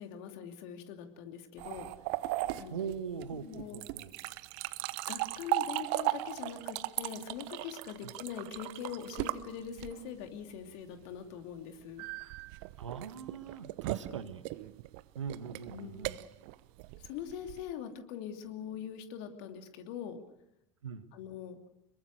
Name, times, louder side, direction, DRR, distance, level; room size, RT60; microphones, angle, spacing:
voice 1, 0.0-1.9 2.6-2.8 3.3-3.8 5.1-12.0 15.7-16.1 17.0-20.2 21.1-21.6, left 8 dB, 60° left, 5 dB, 2.8 m, -43 dB
sound 1, 1.6-10.2 12.0-17.7, right 18 dB, 60° right, 0.9 m, -37 dB
voice 2, 2.7-4.1 8.0-8.1 12.8-14.4 15.1-16.2 20.8-21.1, right 7 dB, 80° right, 10 dB, 1.6 m, -41 dB
26.5 x 22.0 x 6.5 m, 0.85 s
figure-of-eight pair, 75°, 15 cm